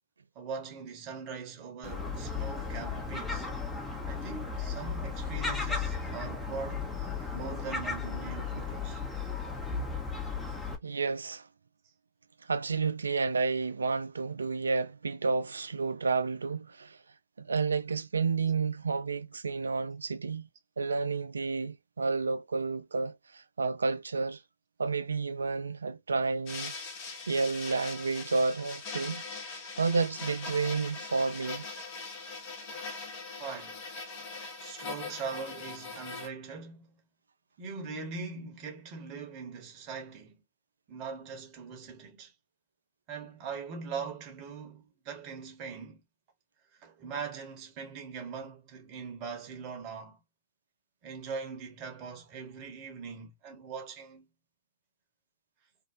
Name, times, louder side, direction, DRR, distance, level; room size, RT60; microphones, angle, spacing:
voice 1, 0.3-3.5 4.1-6.9 7.3-9.0 33.4-33.9 34.2-37.0 37.6-40.4 40.9-42.3 43.1-46.0 46.8-50.2 51.0-54.2, right 5 dB, 35° right, 1.1 m, -41 dB
Gull seagull, 1.8-10.8, left 4 dB, 10° left, 0.7 m, -35 dB
voice 2, 10.8-11.5 12.5-17.0 17.4-20.5 20.8-24.4 24.8-26.7 27.3-29.2 29.8-31.6, right 4 dB, 80° right, 0.3 m, -30 dB
sound 1, 26.5-36.3, left 4 dB, 40° left, 0.9 m, -41 dB
2.7 x 2.1 x 2.5 m
figure-of-eight pair, 110°, 0 cm